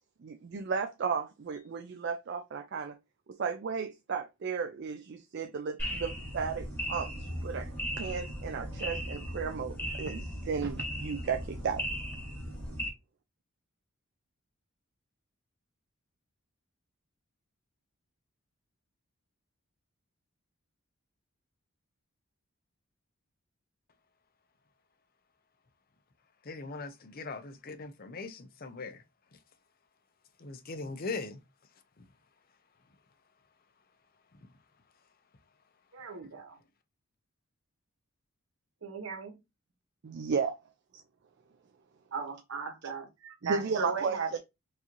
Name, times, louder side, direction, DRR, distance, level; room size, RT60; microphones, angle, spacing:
voice 1, 0.2-3.0 3.3-7.7 8.0-11.9 40.0-40.5 43.4-44.4, right 5 dB, 55° right, 0.4 m, -34 dB
sound 1, 5.8-12.9, equal, 10° left, 1.4 m, -37 dB
voice 2, 26.4-29.0 30.4-31.4, left 3 dB, 45° left, 0.6 m, -40 dB
voice 3, 35.9-36.6 38.8-39.4 42.1-44.4, right 5 dB, 75° right, 0.9 m, -37 dB
4.6 x 2.7 x 3.0 m
head